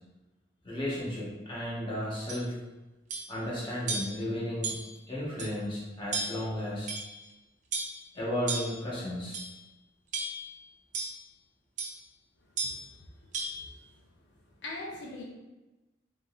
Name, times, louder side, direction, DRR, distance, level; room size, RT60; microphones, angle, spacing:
voice 1, 0.6-2.5 3.3-4.7 5.1-6.9 8.1-9.4, left 1 dB, 25° left, -6 dB, 1.0 m, -34 dB
sound 1, 2.3-2.5 3.1-3.4 3.9-4.2 4.6-5.0 5.4-5.5 6.1-6.5 6.9-7.3 7.7-8.0 8.5-8.8 9.3-9.6 10.1-10.5 10.9-11.2 11.8-12.0 12.6-12.9 13.3-13.6, right 3 dB, 40° right, 0.6 m, -35 dB
voice 2, 14.6-15.2, left 2 dB, 75° left, -2 dB, 0.5 m, -40 dB
3.8 x 3.7 x 2.4 m, 1.1 s
head